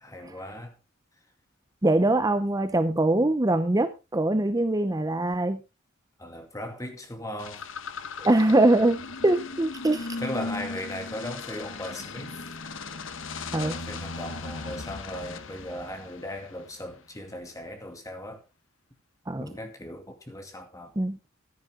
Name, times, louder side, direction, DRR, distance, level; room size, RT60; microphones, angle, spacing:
voice 1, 0.0-0.8 6.2-7.7 10.2-12.4 13.5-18.4 19.4-20.9, left 1 dB, 15° left, 2.4 m, -38 dB
voice 2, 1.8-5.6 8.2-10.1 13.5-13.8 19.3-19.5 21.0-21.2, right 2 dB, 20° right, 0.7 m, -23 dB
sound 1, 7.4-16.9, left 4 dB, 70° left, 1.1 m, -38 dB
14.5 x 10.5 x 3.7 m
head